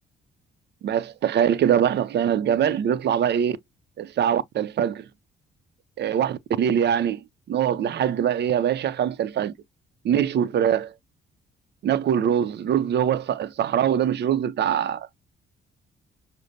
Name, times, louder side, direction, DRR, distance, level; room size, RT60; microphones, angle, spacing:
voice 1, 0.8-3.6 4.0-5.1 6.0-9.5 10.0-10.9 11.8-15.1, right 9 dB, 60° right, 0.6 m, -23 dB
6.4 x 2.1 x 2.7 m
cardioid pair, 90°, 20 cm